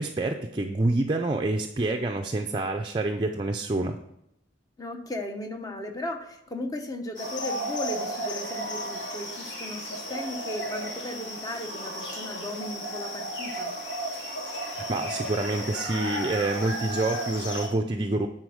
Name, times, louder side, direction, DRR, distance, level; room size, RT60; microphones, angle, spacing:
voice 1, 0.0-4.0 14.6-18.3, right 2 dB, 25° right, 3 dB, 0.5 m, -27 dB
voice 2, 4.8-13.7, left 1 dB, 20° left, 4 dB, 1.0 m, -36 dB
sound 1, 7.1-17.7, equal, 65° left, 2.6 m, -34 dB
9.7 x 4.3 x 6.3 m, 0.78 s
head